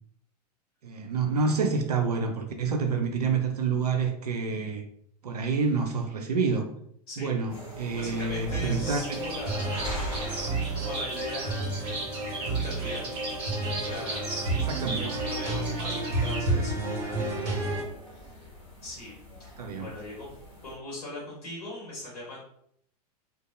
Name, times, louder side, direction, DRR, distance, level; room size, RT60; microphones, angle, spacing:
voice 1, 0.8-4.8 5.2-6.7 7.2-9.2 14.7-15.2 19.6-19.9, right 4 dB, 70° right, 4 dB, 0.5 m, -28 dB
sound 1, 7.5-20.7, equal, 30° left, 1.1 m, -43 dB
voice 2, 7.9-9.9 10.7-13.1 13.8-14.3 14.9-17.2 18.1-18.5 18.8-19.1 19.4-20.4 20.6-22.4, left 1 dB, 65° left, -4 dB, 1.1 m, -40 dB
sound 2, 8.5-17.8, right 2 dB, 45° right, 1.2 m, -31 dB
sound 3, 9.0-16.4, right 2 dB, 25° right, 1.0 m, -37 dB
2.6 x 2.2 x 2.5 m, 0.67 s
figure-of-eight pair, 90°, 21 cm